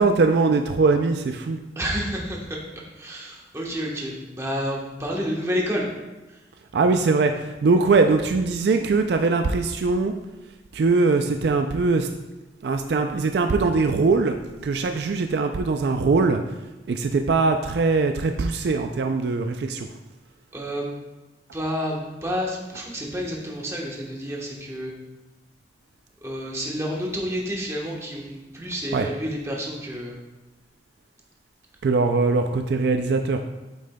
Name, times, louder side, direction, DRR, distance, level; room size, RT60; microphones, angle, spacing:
voice 1, 0.0-1.6 6.7-10.1 10.7-12.1 12.6-16.4 16.9-19.9 28.9-29.1 31.8-33.4, right 3 dB, 60° right, 5 dB, 0.3 m, -21 dB
voice 2, 1.7-5.9 6.3-6.4 20.5-20.9 21.5-24.9 26.2-30.1, equal, 15° right, -2 dB, 1.1 m, -29 dB
8.5 x 7.4 x 2.2 m, 1.1 s
head